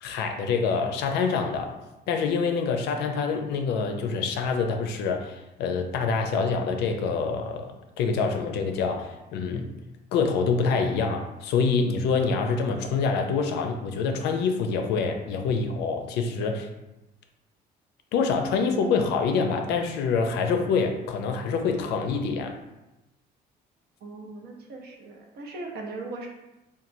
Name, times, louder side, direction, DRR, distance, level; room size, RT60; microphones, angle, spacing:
voice 1, 0.0-1.8 2.1-7.7 8.0-9.7 10.1-16.7 18.1-22.6, left 5 dB, 80° left, 4 dB, 0.4 m, -26 dB
voice 2, 24.0-26.3, right 2 dB, 70° right, 1 dB, 0.6 m, -39 dB
2.9 x 2.3 x 2.6 m, 0.97 s
cardioid pair, 110°, 17 cm